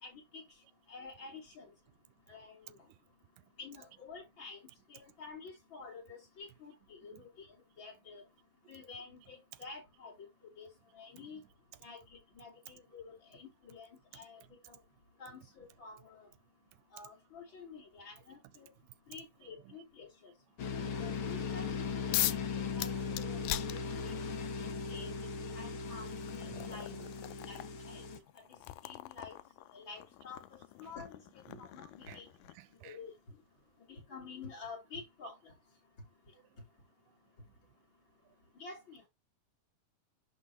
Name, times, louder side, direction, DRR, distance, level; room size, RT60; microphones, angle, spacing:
voice 1, 0.0-0.4 0.9-1.7 2.3-2.8 3.6-4.6 4.9-7.5 7.8-8.2 8.7-10.3 10.6-10.7 10.9-11.4 11.8-12.0 12.4-14.8 15.2-16.3 16.9-18.7 19.1-20.1 20.8-21.7 22.1-23.8 24.0-24.2 24.6-25.1 25.5-26.9 27.5-28.0 28.8-29.3 29.7-31.2 31.6-32.3 32.8-33.1 33.9-35.4 38.6-39.0, left 4 dB, 35° left, 3.7 m, -49 dB
sound 1, 20.6-28.2, left 5 dB, 55° left, 1.5 m, -38 dB
sound 2, 22.1-22.5 22.8-24.4 25.5-25.6 26.1-32.7, left 16 dB, 80° left, 2.1 m, -40 dB
voice 2, 26.5-27.1 31.4-31.7 32.1-32.2 32.5-33.0, right 14 dB, 85° right, 2.2 m, -55 dB
11.0 x 4.2 x 2.8 m
omnidirectional pair, 3.9 m